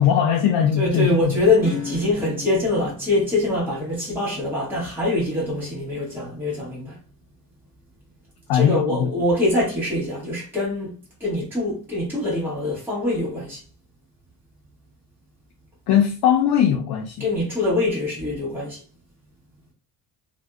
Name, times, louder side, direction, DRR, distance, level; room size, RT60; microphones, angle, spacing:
voice 1, 0.0-1.3 8.5-9.1 15.9-17.3, left 9 dB, 75° left, 0.5 m, -20 dB
voice 2, 0.7-7.0 8.5-13.6 17.2-18.8, left 2 dB, 5° right, 1.0 m, -24 dB
Acoustic guitar / Strum, 1.6-7.8, left 7 dB, 35° left, 1.1 m, -40 dB
2.5 x 2.1 x 2.3 m
cardioid pair, 145°, 39 cm